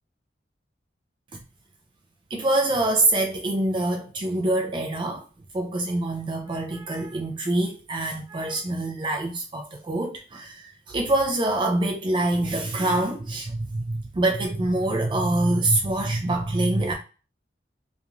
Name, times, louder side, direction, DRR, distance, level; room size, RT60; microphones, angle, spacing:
voice 1, 2.3-5.3 5.5-16.9, right 2 dB, 30° right, 0.3 m, -25 dB
2.9 x 2.5 x 2.2 m
head